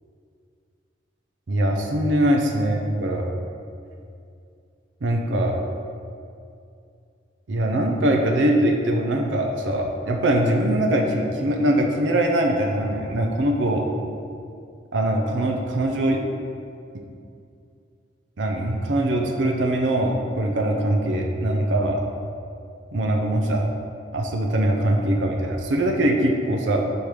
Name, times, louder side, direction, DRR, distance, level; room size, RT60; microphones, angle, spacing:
voice 1, 1.5-3.3 5.0-5.6 7.5-13.8 14.9-16.2 18.4-22.0 22.9-23.6 24.1-26.8, right 1 dB, 80° right, 1 dB, 0.6 m, -22 dB
5.1 x 4.4 x 4.8 m, 2.4 s
head